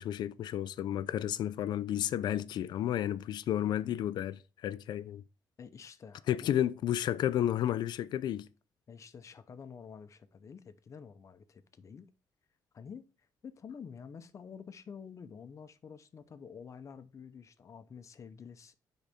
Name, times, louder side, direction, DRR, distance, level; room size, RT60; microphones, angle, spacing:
voice 1, 0.0-5.2 6.3-8.5, left 11 dB, 75° left, 0.5 m, -32 dB
voice 2, 5.6-6.6 8.9-12.1 12.7-13.1 13.4-18.7, left 6 dB, 45° left, 0.7 m, -49 dB
9.6 x 4.0 x 3.5 m
cardioid pair, 105°, 7 cm